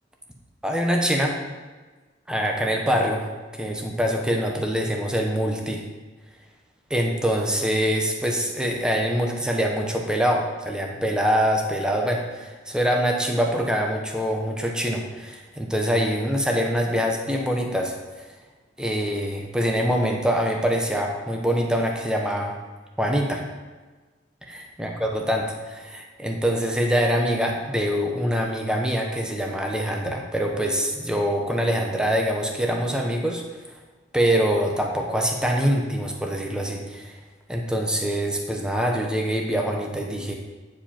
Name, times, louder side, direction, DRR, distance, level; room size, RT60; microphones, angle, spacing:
voice 1, 0.6-1.4 2.3-3.2 3.5-5.8 6.9-18.3 18.8-22.5 23.0-23.4 24.5-33.4 34.1-37.2 37.5-40.3, equal, 5° right, 1 dB, 0.9 m, -24 dB
9.4 x 4.8 x 4.4 m, 1.3 s
head